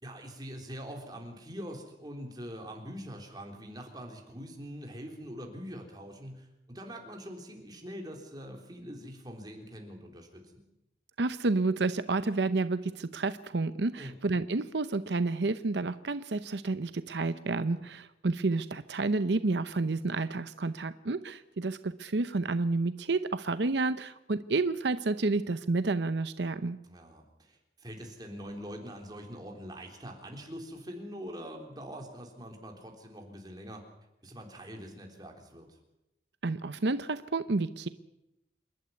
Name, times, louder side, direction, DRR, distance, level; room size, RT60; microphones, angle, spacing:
voice 1, 0.0-10.6 14.0-14.2 17.7-17.8 26.8-33.9 34.2-35.8, equal, 20° right, 2 dB, 3.7 m, -44 dB
voice 2, 11.2-26.8 36.4-37.9, right 3 dB, 75° right, 12 dB, 0.7 m, -30 dB
27.5 x 12.0 x 9.6 m, 0.89 s
head